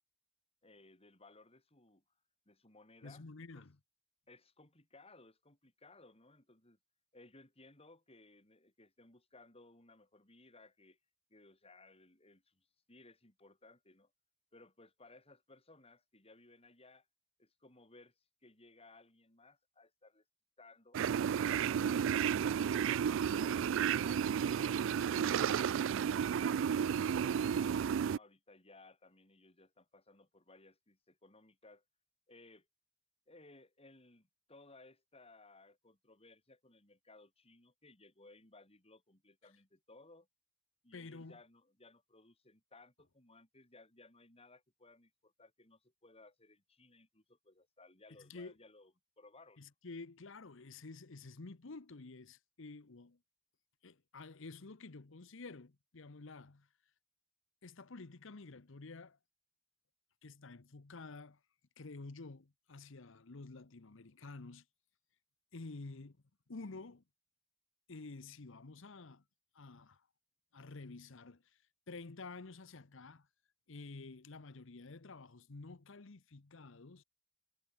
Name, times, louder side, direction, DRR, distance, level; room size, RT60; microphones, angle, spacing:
voice 1, 0.6-2.0 2.5-3.2 3.5-3.7 4.3-6.8 7.1-11.0 11.3-14.1 14.5-17.1 17.4-20.2 20.6-21.0 21.7-26.9 27.2-31.8 32.3-32.7 33.3-40.3 40.8-49.7, left 2 dB, 30° left, 6.8 m, -61 dB
voice 2, 3.0-3.8 40.9-41.4 48.2-48.5 49.6-53.2 53.8-56.7 57.6-59.2 60.2-61.4 61.8-64.6 65.5-66.2 66.5-67.0 67.9-69.2 69.5-70.0 70.5-71.4 71.9-73.3 73.7-77.0, left 3 dB, 65° left, 1.0 m, -50 dB
sound 1, 20.9-28.2, right 8 dB, 70° right, 0.3 m, -32 dB
head